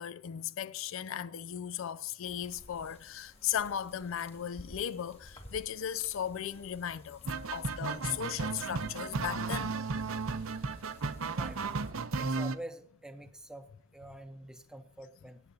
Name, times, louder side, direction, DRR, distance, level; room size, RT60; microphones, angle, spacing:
voice 1, 0.0-7.2 7.5-9.8, left 9 dB, 65° left, 0.4 m, -36 dB
sound 1, 2.2-11.9, left 1 dB, 30° left, 2.0 m, -55 dB
sound 2, 7.2-12.5, right 4 dB, 70° right, 0.7 m, -34 dB
voice 2, 12.1-13.7 13.9-15.4, right 1 dB, 5° right, 0.7 m, -46 dB
18.0 x 9.1 x 2.7 m
head